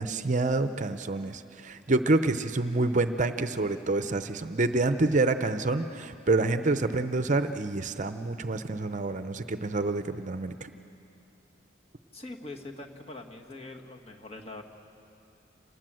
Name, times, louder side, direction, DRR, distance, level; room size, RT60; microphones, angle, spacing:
voice 1, 0.0-10.5, right 2 dB, 40° right, 10 dB, 0.7 m, -27 dB
voice 2, 12.1-14.6, left 2 dB, 30° left, 2 dB, 1.7 m, -43 dB
27.0 x 19.5 x 7.7 m, 2.7 s
head